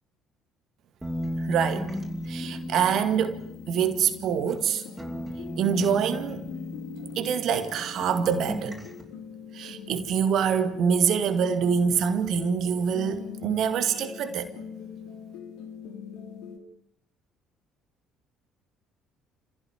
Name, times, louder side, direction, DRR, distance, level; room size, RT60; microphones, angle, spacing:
sound 1, 1.0-4.7 5.0-7.8 8.0-9.0, equal, 10° right, 6.6 m, -36 dB
voice 1, 1.4-1.9 2.3-3.4 3.7-4.8 5.6-6.5 7.2-8.8 9.5-14.5, right 7 dB, 55° right, 2.0 m, -25 dB
sound 2, 2.4-16.6, left 6 dB, 65° left, 3.2 m, -43 dB
30.0 x 16.0 x 9.6 m
figure-of-eight pair, 50°, 0 cm